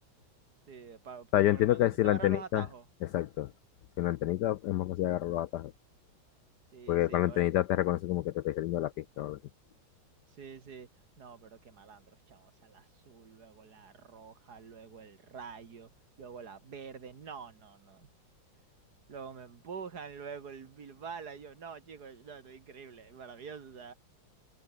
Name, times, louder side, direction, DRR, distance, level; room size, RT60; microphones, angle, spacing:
voice 1, 0.7-2.9 6.7-7.4 10.3-10.9 11.2-15.9 16.2-18.1 19.1-23.9, right 6 dB, 55° right, 2.3 m, -46 dB
voice 2, 1.3-2.6 3.1-3.5 4.0-5.7 6.9-9.4, left 14 dB, 75° left, 1.0 m, -28 dB
omnidirectional pair, 2.1 m